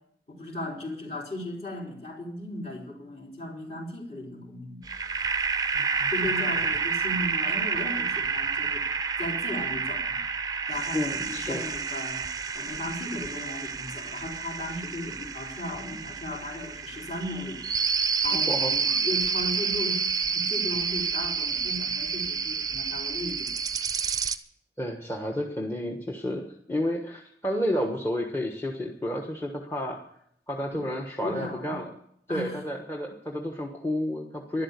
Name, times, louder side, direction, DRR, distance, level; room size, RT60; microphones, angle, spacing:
voice 1, 0.3-4.8 6.1-8.8 9.2-10.2 10.7-12.2 12.5-17.6 18.2-23.5 30.7-30.8 31.2-31.8 32.3-32.6, left 1 dB, 40° left, -1 dB, 4.0 m, -36 dB
sound 1, 4.8-24.4, right 5 dB, 20° right, 0.6 m, -29 dB
voice 2, 5.8-6.1 10.9-11.7 18.5-19.0 24.8-30.0 30.5-31.9 32.3-34.6, left 1 dB, 15° left, 2 dB, 1.3 m, -31 dB
12.5 x 11.5 x 8.2 m, 0.70 s
head